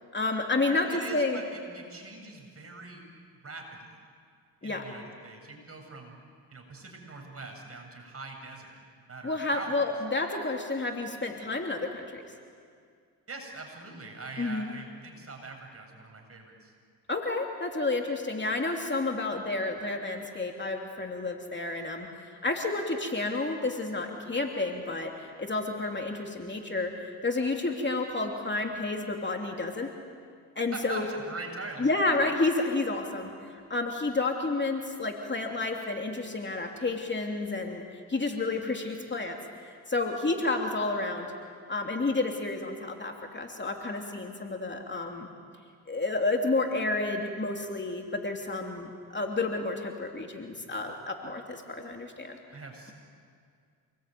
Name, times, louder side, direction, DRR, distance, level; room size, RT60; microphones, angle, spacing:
voice 1, 0.1-1.4 4.6-4.9 9.2-12.2 14.4-14.7 17.1-29.9 30.6-31.1 31.8-37.8 38.1-39.4 39.9-41.3 41.7-45.3 45.9-52.4, left 3 dB, 25° left, 2 dB, 3.0 m, -30 dB
voice 2, 0.7-3.0 3.4-4.0 4.6-6.2 6.5-9.8 13.3-16.7 30.7-31.9 52.5-52.9, right 3 dB, 35° right, 2 dB, 7.6 m, -43 dB
28.0 x 21.0 x 9.3 m, 2.2 s
supercardioid pair, 65°, 42 cm